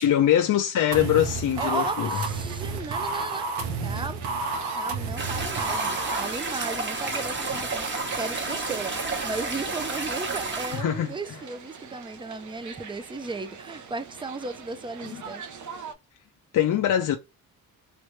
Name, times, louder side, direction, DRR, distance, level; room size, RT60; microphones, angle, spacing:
voice 1, 0.0-2.1 10.7-11.1 15.1-15.2 16.5-17.2, left 11 dB, 55° left, 0.5 m, -23 dB
sound 1, 0.8-15.9, right 5 dB, 50° right, 0.6 m, -43 dB
sound 2, 0.9-6.3, right 3 dB, 90° right, 0.9 m, -30 dB
voice 2, 1.6-3.5 3.8-4.2 4.8-15.4, right 3 dB, 15° right, 0.4 m, -35 dB
sound 3, 5.2-10.8, right 3 dB, 30° right, 1.0 m, -31 dB
3.2 x 2.5 x 3.1 m
cardioid pair, 100°, 38 cm